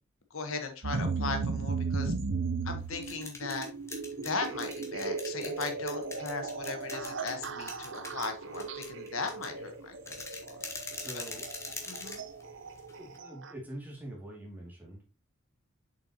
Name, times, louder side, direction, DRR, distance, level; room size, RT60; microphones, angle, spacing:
voice 1, 0.3-2.1 2.6-3.7 4.2-10.2 10.8-11.0 11.8-12.2, left 4 dB, 75° left, 6 dB, 1.3 m, -37 dB
sound 1, 0.8-13.5, right 4 dB, 60° right, 0.7 m, -36 dB
voice 2, 1.0-1.5 10.8-11.5 12.9-15.1, right 1 dB, 10° right, -2 dB, 2.4 m, -45 dB
sound 2, 2.8-13.2, left 3 dB, 15° left, 1.2 m, -44 dB
7.0 x 5.7 x 2.9 m, 0.30 s
head